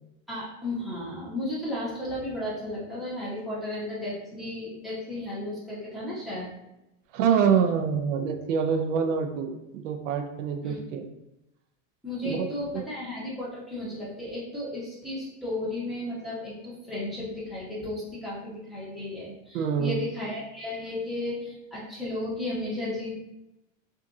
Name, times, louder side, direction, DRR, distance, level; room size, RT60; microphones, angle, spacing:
voice 1, 0.3-6.5 10.6-10.8 12.0-23.1, left 1 dB, ahead, -9 dB, 1.3 m, -34 dB
voice 2, 7.1-11.0 12.2-12.5 12.7-12.8 19.5-20.0, right 7 dB, 85° right, 5 dB, 0.7 m, -26 dB
6.2 x 2.6 x 2.7 m, 0.92 s
supercardioid pair, 155°, 37 cm